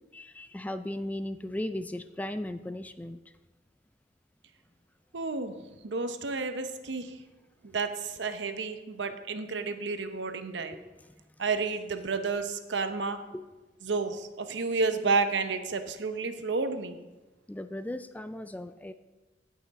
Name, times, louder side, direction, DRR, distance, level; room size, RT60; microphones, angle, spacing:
voice 1, 0.1-3.2 10.6-11.1 13.3-13.5 17.5-18.9, left 1 dB, 10° left, 11 dB, 0.3 m, -37 dB
voice 2, 5.1-5.6 5.8-7.2 7.6-10.8 11.4-13.2 13.8-17.0, right 4 dB, 70° right, 9 dB, 0.8 m, -31 dB
16.0 x 5.8 x 4.1 m, 1.1 s
head